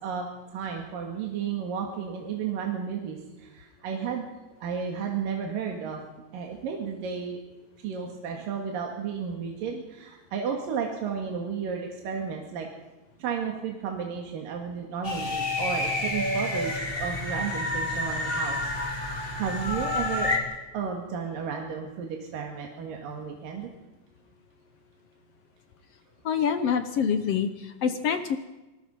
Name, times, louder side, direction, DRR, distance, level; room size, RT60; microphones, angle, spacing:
voice 1, 0.0-4.3 4.6-6.0 6.3-7.4 7.8-12.7 13.2-20.4 20.7-23.7, right 6 dB, 80° right, 2 dB, 3.6 m, -33 dB
sound 1, 15.0-20.4, left 2 dB, 15° left, 2.7 m, -29 dB
voice 2, 26.2-28.4, left 7 dB, 65° left, 9 dB, 1.5 m, -26 dB
26.0 x 19.5 x 5.4 m, 1.1 s
omnidirectional pair, 3.9 m